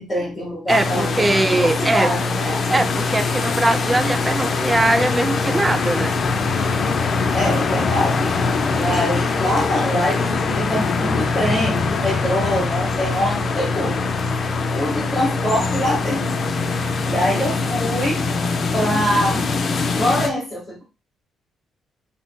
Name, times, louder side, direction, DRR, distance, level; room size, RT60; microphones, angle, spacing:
voice 1, 0.0-1.3 1.5-2.6 7.3-8.3 8.7-14.1 14.7-16.3 17.1-18.2 18.7-19.5 20.0-20.8, equal, 25° left, 1.5 m, -24 dB
sound 1, 0.7-20.3, left 4 dB, 50° left, 0.4 m, -22 dB
voice 2, 0.7-2.1 2.7-6.2, right 2 dB, 20° right, 0.4 m, -20 dB
5.5 x 2.0 x 2.2 m
cardioid pair, 90°, 0 cm